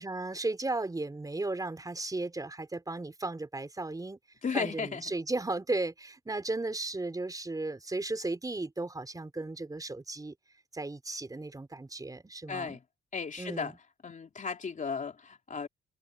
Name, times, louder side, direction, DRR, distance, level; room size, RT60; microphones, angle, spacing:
voice 1, 0.0-4.2 4.5-10.3 10.7-12.8 13.4-13.7, right 2 dB, 20° right, 5.1 m, -35 dB
voice 2, 4.4-5.1 12.5-12.8 13.1-13.7 14.0-15.7, left 5 dB, 40° left, 3.6 m, -35 dB
cardioid pair, 90°, 20 cm